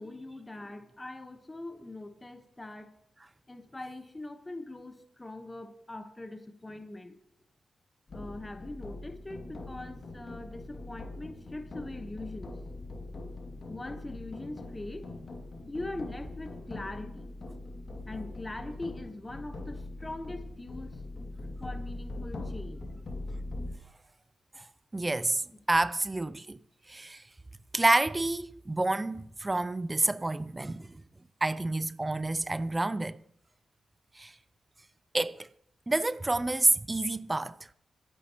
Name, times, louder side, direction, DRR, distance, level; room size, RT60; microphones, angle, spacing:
voice 1, 0.0-2.9 3.5-7.2 8.1-12.6 13.7-15.1 15.7-17.3 18.1-21.0 21.6-22.8 25.5-25.6, left 2 dB, 20° left, 1.1 m, -42 dB
sound 1, 8.1-23.7, left 2 dB, 50° left, 2.2 m, -42 dB
voice 2, 24.9-25.4 25.7-26.6 26.9-27.2 27.7-30.9 31.4-33.2 34.2-34.3 35.1-35.5 35.9-37.5, right 2 dB, 20° right, 0.4 m, -28 dB
25.5 x 9.7 x 3.0 m
cardioid pair, 80°, 0 cm